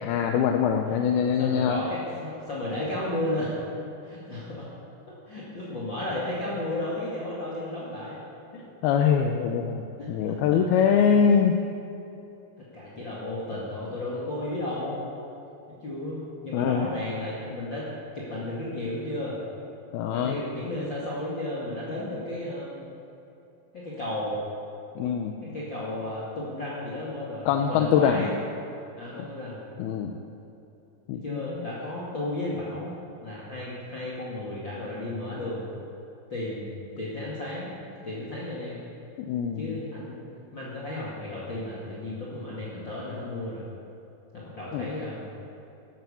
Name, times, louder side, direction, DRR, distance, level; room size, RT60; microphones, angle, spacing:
voice 1, 0.0-1.8 8.8-11.6 16.5-16.9 19.9-20.4 25.0-25.4 27.5-28.3 29.8-30.2 31.1-31.4 39.3-39.8 44.7-44.9, left 7 dB, 85° left, 4 dB, 2.7 m, -23 dB
voice 2, 1.4-3.5 4.0-4.7 5.3-8.2 8.5-8.6 10.0-10.6 12.7-15.0 15.8-17.9 18.1-19.4 20.1-22.8 23.7-24.3 25.4-28.3 29.0-29.6 31.2-35.7 36.3-36.7 37.0-37.7 38.0-38.8 39.6-40.1 40.5-43.7 44.3-45.2, left 1 dB, 35° left, -7 dB, 2.5 m, -33 dB
14.0 x 12.0 x 7.1 m, 2.9 s
omnidirectional pair, 4.3 m